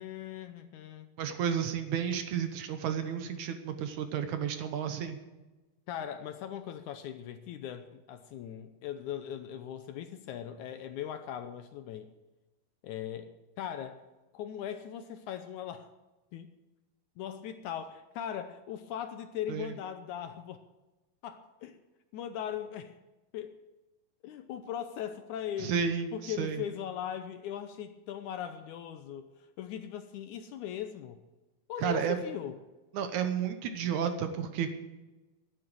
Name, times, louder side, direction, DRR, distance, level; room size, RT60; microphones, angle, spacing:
voice 1, 0.0-1.1 5.9-12.1 12.8-14.0 14.3-15.9 16.3-16.5 17.2-20.6 21.2-21.8 22.1-22.9 23.3-23.6 24.2-25.8 26.1-31.2 31.7-32.6, left 10 dB, 75° left, 9 dB, 1.9 m, -39 dB
voice 2, 1.2-5.2 19.5-19.7 25.6-26.6 31.8-32.2 32.9-34.7, right 8 dB, 70° right, 8 dB, 2.1 m, -32 dB
12.5 x 9.0 x 7.8 m, 1.1 s
omnidirectional pair, 3.9 m